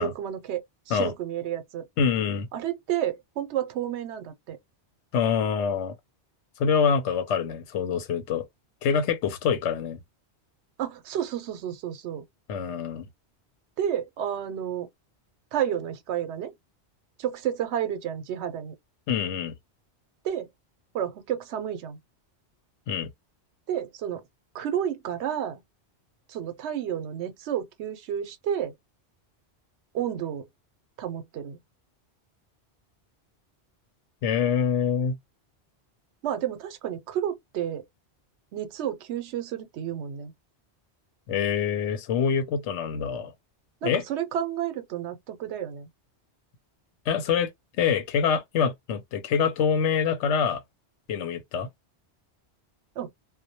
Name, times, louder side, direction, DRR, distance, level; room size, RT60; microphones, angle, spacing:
voice 1, 0.0-1.9 2.5-4.6 10.8-12.2 13.8-14.9 15.5-16.5 17.2-18.7 20.2-20.5 20.9-22.0 23.7-24.2 24.5-25.6 26.3-28.7 29.9-30.4 31.0-31.6 36.2-37.8 38.5-40.3 43.8-45.9 53.0-53.1, right 10 dB, 80° right, 0.9 m, -31 dB
voice 2, 2.0-2.5 5.1-5.9 6.6-8.4 8.8-10.0 12.5-13.1 19.1-19.5 22.9-23.1 34.2-35.2 41.3-43.3 43.8-44.0 47.1-47.5 47.8-50.6 51.1-51.7, left 7 dB, 85° left, 0.9 m, -25 dB
2.2 x 2.1 x 2.7 m
omnidirectional pair, 1.1 m